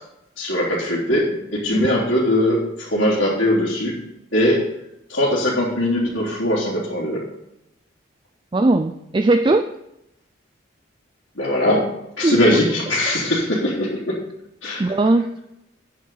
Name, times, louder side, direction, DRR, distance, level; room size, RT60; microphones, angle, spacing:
voice 1, 0.4-4.0 4.3-4.7 5.1-7.2 11.4-14.2 14.6-14.8, left 1 dB, 75° left, -9 dB, 3.3 m, -20 dB
voice 2, 8.5-9.7 12.2-12.4 14.8-15.4, right 2 dB, 25° right, 8 dB, 0.4 m, -19 dB
9.3 x 6.5 x 6.9 m, 0.83 s
head